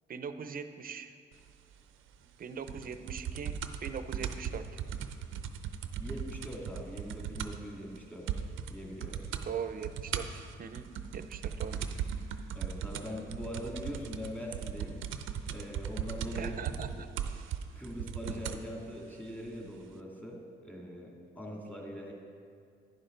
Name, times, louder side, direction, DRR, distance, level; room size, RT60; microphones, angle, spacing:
voice 1, 0.1-1.1 2.4-4.7 9.4-11.8 16.3-17.1, right 6 dB, 45° right, 10 dB, 0.6 m, -41 dB
sound 1, 2.7-7.7 8.0-8.1 8.3-8.7 9.0-9.5 9.8-18.7 19.5-19.6, right 8 dB, 85° right, 0.6 m, -37 dB
voice 2, 6.0-9.3 12.5-15.0 15.5-16.8 17.7-22.1, equal, 10° left, -2 dB, 2.4 m, -42 dB
11.0 x 9.8 x 3.9 m, 2.3 s
cardioid pair, 90°, 20 cm